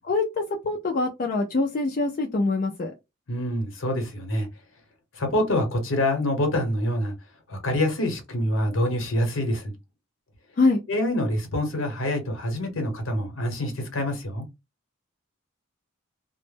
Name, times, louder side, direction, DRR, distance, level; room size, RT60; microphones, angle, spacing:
voice 1, 0.0-2.9 10.6-10.8, left 3 dB, 40° left, 0.4 m, -24 dB
voice 2, 3.3-4.5 5.1-7.1 7.5-9.7 10.9-14.5, left 1 dB, 65° left, 0.9 m, -26 dB
2.1 x 2.0 x 3.2 m
head